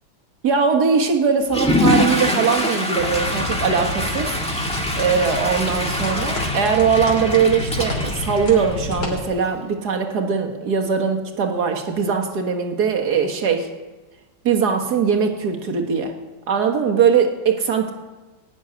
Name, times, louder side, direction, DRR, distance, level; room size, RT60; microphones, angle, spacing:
voice 1, 0.4-4.4 4.9-13.7 14.4-16.1 16.5-17.9, right 6 dB, 60° right, 4 dB, 2.1 m, -20 dB
Water / Toilet flush, 1.4-9.2, left 1 dB, 5° left, 1.4 m, -24 dB
sound 1, 3.0-9.2, left 2 dB, 65° left, 3.7 m, -29 dB
17.0 x 7.3 x 9.7 m, 1.2 s
omnidirectional pair, 2.0 m